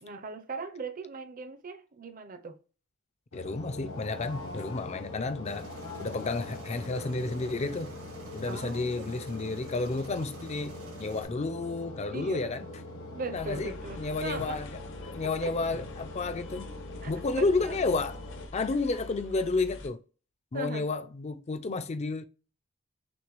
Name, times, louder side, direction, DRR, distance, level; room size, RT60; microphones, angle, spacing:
voice 1, 0.0-2.6 8.4-9.1 12.1-12.8 13.1-14.6 15.4-15.5 17.0-17.9 20.5-20.9, right 3 dB, 40° right, 0.6 m, -39 dB
sound 1, 3.3-18.5, left 2 dB, 75° left, 1.4 m, -43 dB
voice 2, 3.3-5.7 6.0-8.0 8.3-12.6 13.3-13.7 14.0-14.7 15.1-16.7 17.1-18.2 18.5-20.0 20.5-22.3, left 3 dB, 30° left, 0.4 m, -31 dB
Aircraft, 5.4-11.2, right 2 dB, 85° right, 1.9 m, -49 dB
sound 2, 13.3-19.9, left 2 dB, 60° left, 0.8 m, -45 dB
6.1 x 2.2 x 3.0 m
head